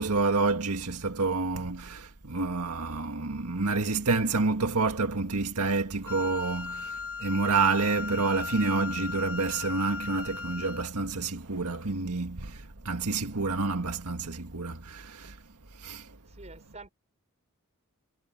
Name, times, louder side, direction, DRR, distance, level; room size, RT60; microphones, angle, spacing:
voice 1, 0.0-15.4 15.8-16.1, right 3 dB, 90° right, 1.7 m, -28 dB
Wind instrument woodwind instrument, 6.1-10.9, left 5 dB, 65° left, 3.9 m, -37 dB
voice 2, 16.3-16.9, right 3 dB, 30° right, 5.5 m, -47 dB
head